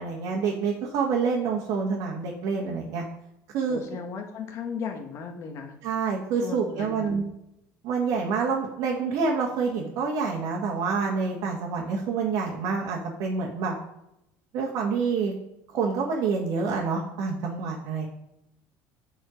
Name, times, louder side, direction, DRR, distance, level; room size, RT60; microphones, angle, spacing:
voice 1, 0.0-3.0 3.5-3.8 5.8-7.2 7.8-13.7 14.5-15.3 15.7-18.1, right 5 dB, 65° right, -3 dB, 1.6 m, -27 dB
voice 2, 3.7-5.7 6.4-7.1, left 5 dB, 50° left, 4 dB, 1.4 m, -36 dB
7.6 x 4.9 x 5.1 m, 0.84 s
cardioid pair, 135°, 7 cm